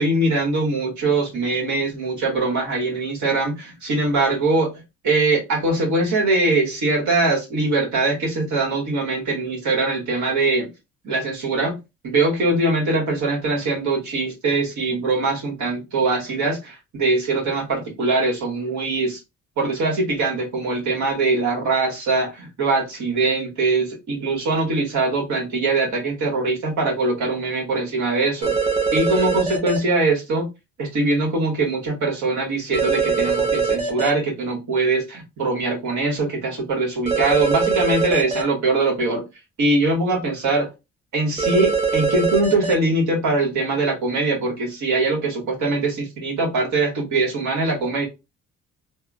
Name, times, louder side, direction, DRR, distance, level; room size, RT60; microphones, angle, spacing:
voice 1, 0.0-4.7 5.0-10.7 11.0-11.8 12.0-19.2 19.6-28.5 28.9-30.5 30.8-39.2 39.6-40.7 41.1-48.1, right 3 dB, 70° right, -1 dB, 1.7 m, -22 dB
sound 1, 28.4-29.8 32.7-34.1 37.1-38.4 41.4-42.7, right 5 dB, 20° right, 1.4 m, -22 dB
3.5 x 2.3 x 2.3 m, 0.25 s
cardioid pair, 90°, 30 cm